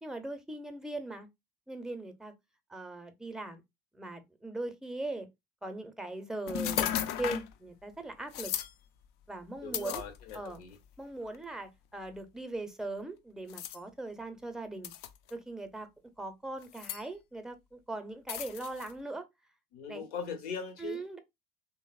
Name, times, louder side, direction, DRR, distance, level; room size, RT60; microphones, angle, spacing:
voice 1, 0.0-1.3 1.7-2.3 2.7-3.6 3.9-5.3 5.6-8.5 9.3-10.0 10.3-10.6 11.0-14.9 15.3-15.9 16.2-19.3 19.9-20.1 20.8-21.2, right 2 dB, 5° right, 0.6 m, -40 dB
sound 1, 6.5-7.5 8.3-8.7 9.7-10.6 11.3-11.4 13.5-13.8 14.8-15.3 16.6-17.0 18.3-18.9, left 10 dB, 60° left, 0.4 m, -35 dB
voice 2, 9.6-10.7 19.7-21.0, left 6 dB, 80° left, 0.8 m, -40 dB
2.9 x 2.0 x 2.3 m
hypercardioid pair, 75°, 19 cm